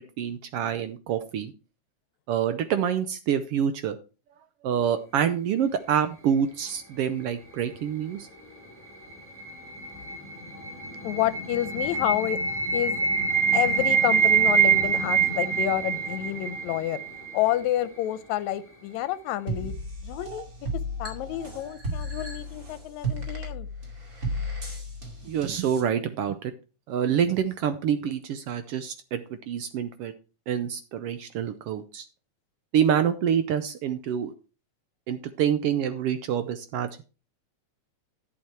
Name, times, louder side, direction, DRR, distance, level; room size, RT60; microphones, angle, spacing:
voice 1, 0.0-1.5 2.3-4.0 4.6-8.3 25.2-26.5 26.9-30.1 30.5-32.0 32.7-34.3 35.1-37.1, right 8 dB, 75° right, 1.4 m, -27 dB
sound 1, 8.6-17.6, right 6 dB, 5° left, 1.9 m, -25 dB
voice 2, 11.0-12.4 12.7-13.1 13.5-17.0 17.3-19.7 20.0-20.4 21.0-23.7, left 13 dB, 80° left, 2.0 m, -29 dB
sound 2, 19.5-25.8, equal, 30° right, 2.5 m, -34 dB
11.0 x 7.1 x 4.4 m
omnidirectional pair, 3.3 m